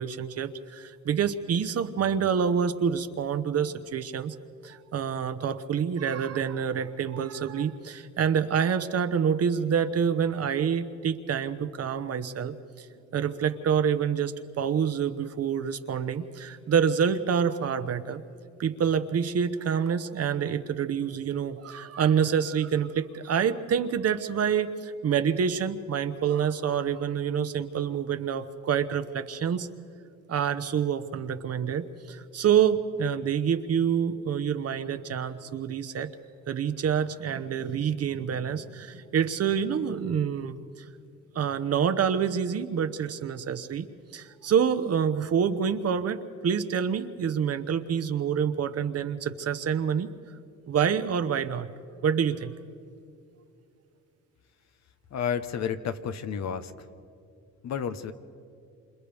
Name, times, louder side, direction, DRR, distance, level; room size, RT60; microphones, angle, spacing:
voice 1, 0.0-4.3 4.6-12.9 13.1-18.2 18.6-29.7 30.3-36.1 36.5-40.8 41.3-43.9 44.1-50.1 50.7-51.7 52.0-52.5, right 7 dB, 55° right, 10 dB, 1.0 m, -27 dB
voice 2, 55.1-56.7 57.6-58.1, left 7 dB, 60° left, 10 dB, 1.0 m, -31 dB
28.0 x 26.5 x 3.5 m, 2.5 s
cardioid pair, 90°, 30 cm